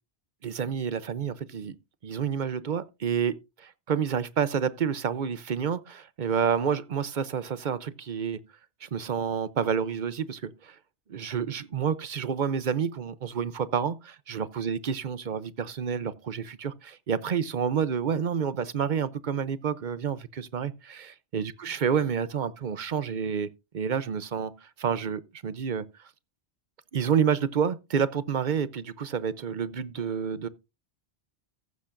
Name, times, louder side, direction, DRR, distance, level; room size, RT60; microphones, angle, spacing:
voice 1, 0.4-1.8 2.0-8.4 8.8-10.8 11.1-23.5 23.7-24.5 24.8-25.8 26.9-30.5, right 7 dB, 50° right, 0.7 m, -29 dB
14.5 x 10.0 x 2.5 m
omnidirectional pair, 1.1 m